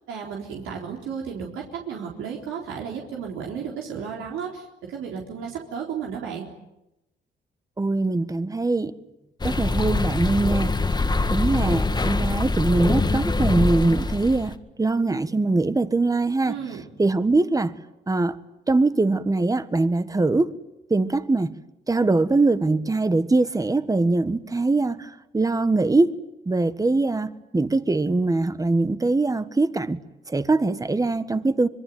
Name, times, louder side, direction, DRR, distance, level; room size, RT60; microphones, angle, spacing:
voice 1, 0.1-6.5 16.5-16.8, right 7 dB, 90° right, 4.0 m, -33 dB
voice 2, 7.8-8.9 9.4-10.7 11.3-16.6 17.0-17.7 18.1-18.4 18.7-20.5 20.9-21.5 21.9-26.2 26.4-30.0 30.3-31.7, right 2 dB, 15° right, 1.5 m, -22 dB
sound 1, 9.4-14.5, left 3 dB, 20° left, 1.7 m, -24 dB
26.0 x 22.5 x 9.4 m
cardioid pair, 90°, 20 cm